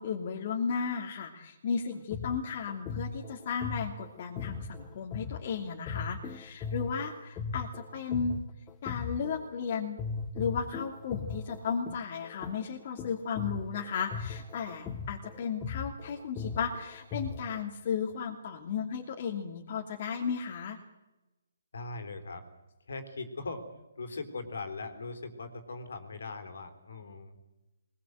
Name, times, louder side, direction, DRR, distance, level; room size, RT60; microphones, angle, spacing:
voice 1, 0.0-8.3 8.8-10.0 10.3-20.8, left 6 dB, 45° left, 2 dB, 2.6 m, -34 dB
sound 1, 1.9-9.6 10.0-17.6, left 5 dB, 20° left, 1.6 m, -38 dB
voice 2, 21.7-22.5 22.9-23.7 24.0-27.5, left 3 dB, 70° left, 7 dB, 3.9 m, -40 dB
21.5 x 21.0 x 7.9 m, 1.0 s
figure-of-eight pair, 140°, 0 cm